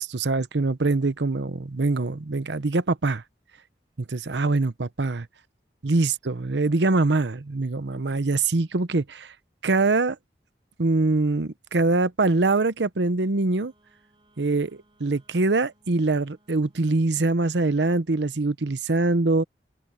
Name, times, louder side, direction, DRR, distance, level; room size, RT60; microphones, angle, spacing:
voice 1, 0.0-3.2 4.1-5.2 5.8-9.3 9.6-10.2 10.8-13.7 14.4-19.4, right 3 dB, 90° right, 0.9 m, -23 dB
Wind instrument woodwind instrument, 13.4-17.8, right 1 dB, 30° right, 7.8 m, -65 dB
open air
head